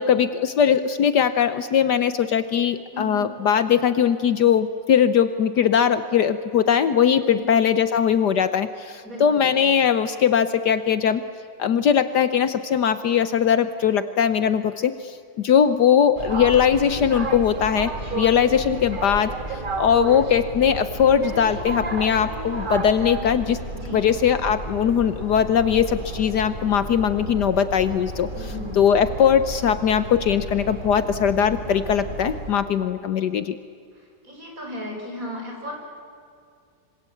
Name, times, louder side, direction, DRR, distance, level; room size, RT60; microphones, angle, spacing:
voice 1, 0.0-11.2 11.6-23.6 23.9-28.3 28.7-33.6, left 8 dB, 65° left, 12 dB, 1.4 m, -20 dB
voice 2, 2.9-3.3 7.3-7.5 9.0-9.4 23.7-24.0 28.3-28.8 34.2-35.7, left 1 dB, 45° right, 0 dB, 6.6 m, -35 dB
sound 1, 16.2-32.5, right 2 dB, 25° right, 1.7 m, -32 dB
26.0 x 26.0 x 8.5 m, 2.3 s
omnidirectional pair, 2.1 m